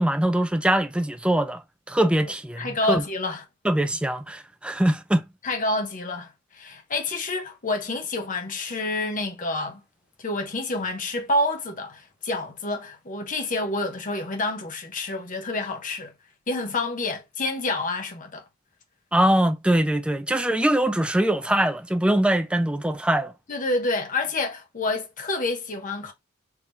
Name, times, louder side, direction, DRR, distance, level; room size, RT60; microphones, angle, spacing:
voice 1, 0.0-1.6 1.9-3.0 3.6-5.3 19.1-23.3, right 1 dB, 5° right, 0.4 m, -22 dB
voice 2, 2.6-3.4 5.4-9.8 10.2-16.1 16.5-18.4 23.5-26.1, left 2 dB, 40° left, 0.9 m, -28 dB
3.5 x 2.9 x 3.3 m
head